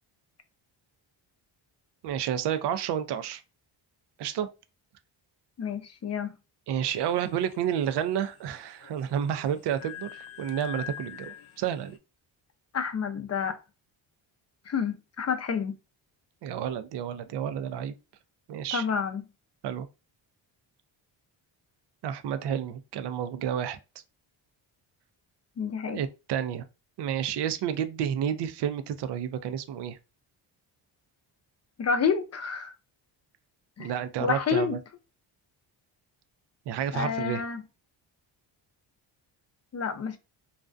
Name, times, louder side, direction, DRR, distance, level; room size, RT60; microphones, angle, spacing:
voice 1, 2.0-3.4 4.2-4.5 6.7-12.0 16.4-17.9 18.5-18.8 19.6-19.9 22.0-23.8 25.9-26.6 27.0-30.0 33.8-34.8 36.7-37.4, right 9 dB, 60° right, 0.5 m, -30 dB
voice 2, 5.6-6.3 12.7-13.6 14.7-15.8 18.7-19.2 25.6-26.0 31.8-32.7 33.8-33.9 34.2-34.8 36.9-37.6 39.7-40.2, left 6 dB, 35° left, 0.5 m, -29 dB
sound 1, 6.9-12.0, left 10 dB, 85° left, 0.6 m, -45 dB
2.4 x 2.1 x 2.4 m
cardioid pair, 100°, 47 cm